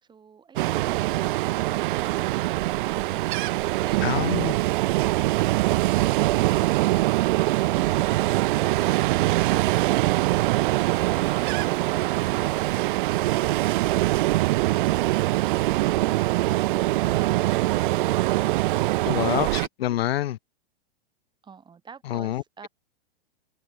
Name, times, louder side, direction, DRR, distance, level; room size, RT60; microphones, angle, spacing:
Ocean, 0.6-19.7, right 18 dB, 55° right, 0.8 m, -23 dB
voice 1, 4.0-4.5 19.1-20.4 22.1-22.7, left 13 dB, 70° left, 1.2 m, -27 dB
voice 2, 21.4-22.7, right 6 dB, 15° right, 5.8 m, -49 dB
hypercardioid pair, 145°, 31 cm